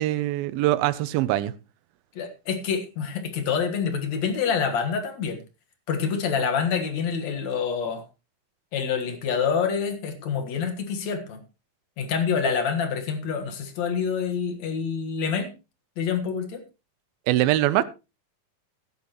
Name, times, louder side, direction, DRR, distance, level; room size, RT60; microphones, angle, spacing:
voice 1, 0.0-1.5 17.3-17.8, right 15 dB, 90° right, 2.6 m, -22 dB
voice 2, 2.2-5.4 5.9-8.0 8.7-11.4 12.0-15.5 16.0-16.6, left 6 dB, 55° left, 2.5 m, -27 dB
15.0 x 11.0 x 3.0 m
omnidirectional pair, 4.1 m